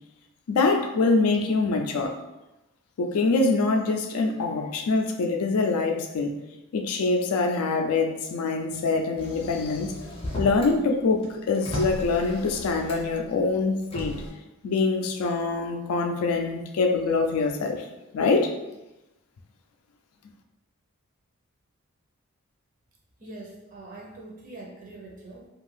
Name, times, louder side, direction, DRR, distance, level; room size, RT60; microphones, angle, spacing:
voice 1, 0.5-2.2 3.0-6.3 6.7-9.9 10.4-14.2 14.6-17.8 18.1-18.5, left 3 dB, 85° left, 4 dB, 0.4 m, -24 dB
Motor vehicle (road), 9.2-10.8 11.1-13.2 13.8-14.3, left 1 dB, 25° left, 0.5 m, -35 dB
voice 2, 23.2-25.5, right 2 dB, 35° right, -3 dB, 0.6 m, -43 dB
2.6 x 2.3 x 3.2 m, 0.98 s
head